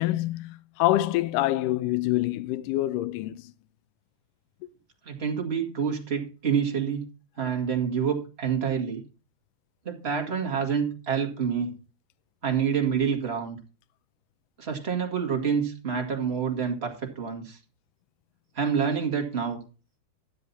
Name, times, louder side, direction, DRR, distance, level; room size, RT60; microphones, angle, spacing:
voice 1, 0.0-3.5, left 16 dB, 80° left, 2.1 m, -26 dB
voice 2, 5.0-7.0 7.4-9.0 9.8-11.7 12.4-13.6 14.6-17.6 18.5-19.6, right 7 dB, 30° right, 1.3 m, -27 dB
12.5 x 7.8 x 4.1 m
omnidirectional pair, 4.2 m